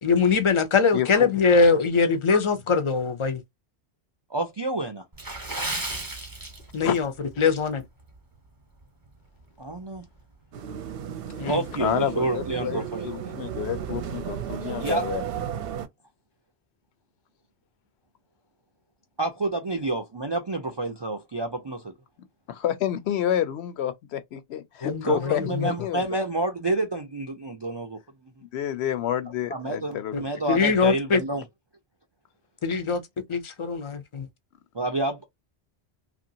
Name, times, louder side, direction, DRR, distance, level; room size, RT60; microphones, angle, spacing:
voice 1, 0.0-3.4 6.7-7.1 7.4-7.8 11.4-11.6 24.8-25.7 30.1-30.2 30.5-31.2 32.6-33.0 33.3-34.3, left 5 dB, 40° left, 0.4 m, -22 dB
voice 2, 0.9-1.3 6.8-6.9 7.4-7.5 11.3-11.5 11.8-15.2 22.5-26.1 28.5-30.2, left 10 dB, 80° left, 0.8 m, -29 dB
voice 3, 4.3-5.0 9.6-10.1 11.5-13.1 14.8-15.0 19.2-21.9 25.1-28.0 29.5-31.4 34.7-35.2, right 2 dB, 45° right, 0.3 m, -28 dB
Water / Splash splatter, 5.1-7.0 7.3-7.6 8.1-8.4 8.8-8.9, right 2 dB, 20° right, 0.8 m, -33 dB
sound 1, 10.5-15.9, right 9 dB, 65° right, 0.7 m, -34 dB
3.0 x 2.5 x 2.7 m
omnidirectional pair, 1.1 m